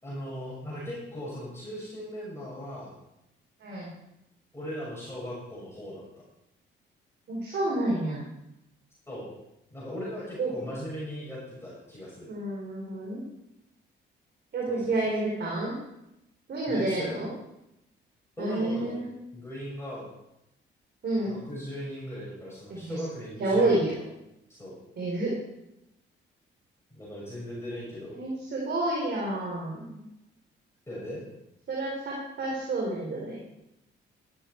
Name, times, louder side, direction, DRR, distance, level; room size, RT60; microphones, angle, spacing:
voice 1, 0.0-2.9 4.5-6.0 9.1-9.3 9.7-12.3 14.7-14.9 16.7-17.2 18.4-19.0 19.3-20.1 21.3-23.8 24.5-24.8 26.9-28.1 30.9-31.2, equal, 10° left, -7 dB, 6.0 m, -38 dB
voice 2, 7.3-8.2 10.4-10.5 12.3-13.2 14.5-15.8 16.5-17.3 18.4-19.1 21.0-21.4 22.7-23.0 23.4-23.9 25.0-25.3 28.1-30.0 31.7-33.4, right 2 dB, 60° right, -3 dB, 4.0 m, -29 dB
13.0 x 11.5 x 4.6 m, 0.88 s
cardioid pair, 90°, 20 cm